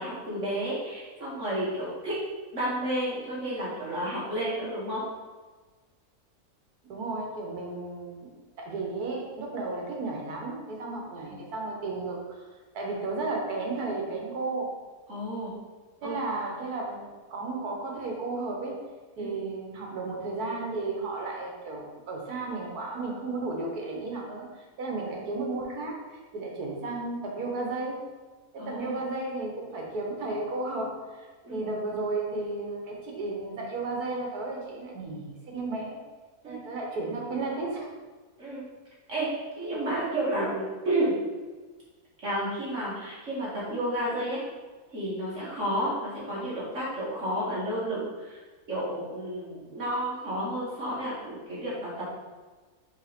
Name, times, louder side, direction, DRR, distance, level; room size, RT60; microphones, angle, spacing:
voice 1, 0.0-2.2 2.5-5.0 11.3-11.4 15.1-15.5 16.0-16.2 19.2-19.3 28.6-29.0 31.4-31.7 36.4-36.6 38.4-38.6 39.1-41.2 42.2-44.4 44.9-48.4 48.7-52.1, right 1 dB, 55° right, -8 dB, 2.3 m, -31 dB
voice 2, 6.9-8.3 8.6-12.4 12.7-14.8 16.0-18.8 19.2-28.1 28.5-36.0 36.5-37.9, right 3 dB, 85° right, -1 dB, 1.8 m, -33 dB
5.4 x 3.8 x 5.1 m, 1.3 s
omnidirectional pair, 1.6 m